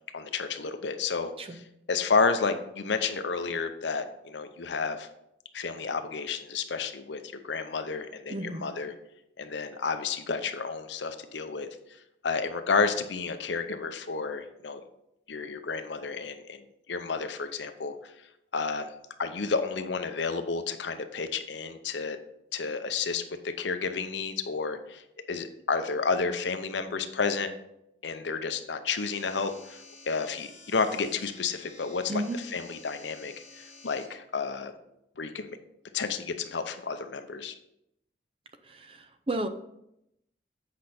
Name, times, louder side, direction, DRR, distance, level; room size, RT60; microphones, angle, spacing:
voice 1, 0.1-5.1 5.5-8.9 9.4-11.7 12.2-14.8 15.3-16.6 16.9-18.1 18.5-18.9 19.2-22.2 22.5-25.0 25.3-27.5 28.0-34.7 35.2-35.6 35.9-37.5, left 5 dB, 80° left, 9 dB, 0.7 m, -31 dB
voice 2, 8.3-8.7 32.1-32.4 38.7-39.5, right 1 dB, 30° right, 9 dB, 0.5 m, -33 dB
sound 1, 29.0-34.1, left 3 dB, 35° left, 1.7 m, -51 dB
8.4 x 5.2 x 4.2 m, 0.82 s
head